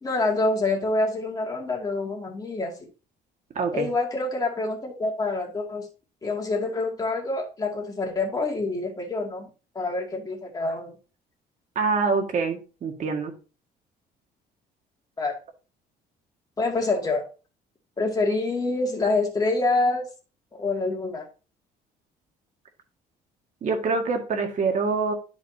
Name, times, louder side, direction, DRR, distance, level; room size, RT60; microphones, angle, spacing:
voice 1, 0.0-2.9 3.7-5.9 6.2-9.5 9.7-10.9 15.2-15.4 16.6-17.3 18.0-20.1 20.5-21.3, left 2 dB, 20° left, 0 dB, 2.3 m, -26 dB
voice 2, 3.6-3.9 11.8-13.3 23.6-25.1, right 4 dB, 50° right, 3 dB, 1.9 m, -25 dB
10.5 x 5.2 x 2.8 m, 0.34 s
cardioid pair, 110°, 17 cm